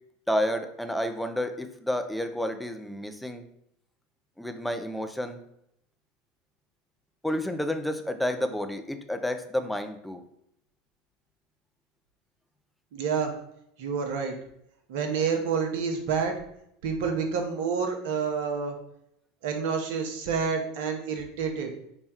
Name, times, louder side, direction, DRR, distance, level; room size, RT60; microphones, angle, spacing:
voice 1, 0.3-3.4 4.4-5.4 7.2-10.2, left 1 dB, 5° left, 7 dB, 0.4 m, -30 dB
voice 2, 12.9-13.3 13.8-14.3 14.9-16.4 16.8-18.8 19.4-21.7, right 6 dB, 65° right, 4 dB, 0.8 m, -28 dB
4.2 x 2.3 x 4.2 m, 0.76 s
hypercardioid pair, 80°, 0 cm